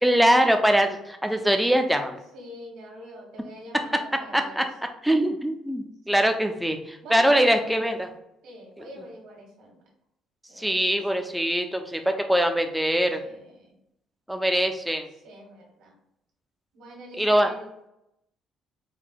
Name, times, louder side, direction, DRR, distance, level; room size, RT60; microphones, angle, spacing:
voice 1, 0.0-2.2 4.3-4.6 5.0-8.1 10.6-13.2 14.3-15.1 17.2-17.5, equal, ahead, 5 dB, 0.4 m, -22 dB
voice 2, 2.3-4.6 6.1-6.4 7.0-7.7 8.4-9.8 10.5-11.2 13.2-13.8 15.2-15.9 16.7-17.7, equal, 75° right, 0 dB, 1.5 m, -44 dB
4.6 x 2.2 x 3.9 m, 0.83 s
cardioid pair, 155°, 0 cm